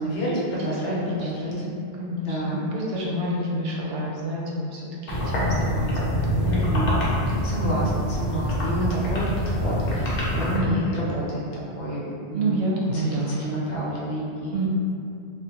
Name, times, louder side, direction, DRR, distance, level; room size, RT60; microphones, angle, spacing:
voice 1, 0.0-1.5 2.3-2.7 6.4-7.0 7.3-11.4 11.7-12.6 12.9-14.5, right 1 dB, 80° left, -6 dB, 1.0 m, -29 dB
voice 2, 0.7-4.8 5.1-6.6 7.6-7.8 10.5-10.9 12.3-13.4 14.5-14.7, right 1 dB, 65° right, -4 dB, 0.7 m, -28 dB
sound 1, 5.1-10.6, equal, 50° left, 0.6 m, -25 dB
2.5 x 2.2 x 2.7 m, 2.4 s
omnidirectional pair, 1.2 m